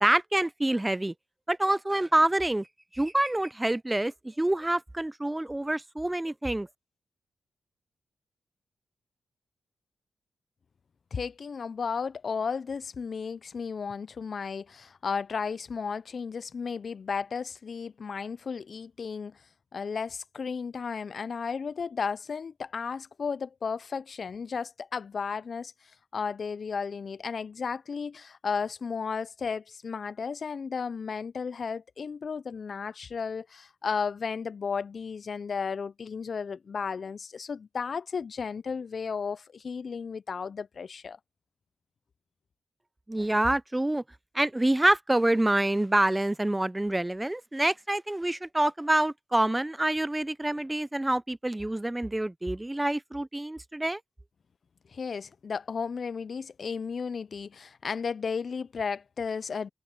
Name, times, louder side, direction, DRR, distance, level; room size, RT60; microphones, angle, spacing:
voice 1, 0.0-1.1 1.5-2.7 2.9-6.7 43.1-44.0 44.3-54.0, right 1 dB, 15° right, 0.7 m, -26 dB
voice 2, 11.1-19.4 19.7-25.7 26.1-41.2 54.9-59.7, left 5 dB, 60° left, 0.4 m, -34 dB
cardioid pair, 50°, 0 cm